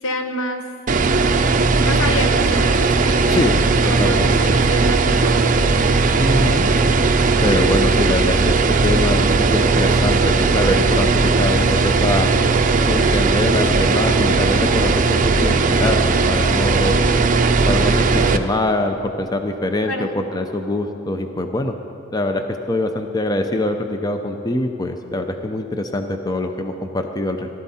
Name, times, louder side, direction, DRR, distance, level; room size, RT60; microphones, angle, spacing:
voice 1, 0.0-0.6 1.8-3.4 3.9-5.4 19.8-20.1, left 1 dB, 75° left, 5 dB, 1.2 m, -27 dB
sound 1, 0.9-18.4, right 3 dB, 40° right, 0.6 m, -17 dB
voice 2, 3.8-4.3 6.2-6.7 7.4-12.3 12.9-17.0 17.6-21.7 22.1-27.5, left 1 dB, 20° left, 6 dB, 0.6 m, -23 dB
17.0 x 12.5 x 4.2 m, 2.7 s
head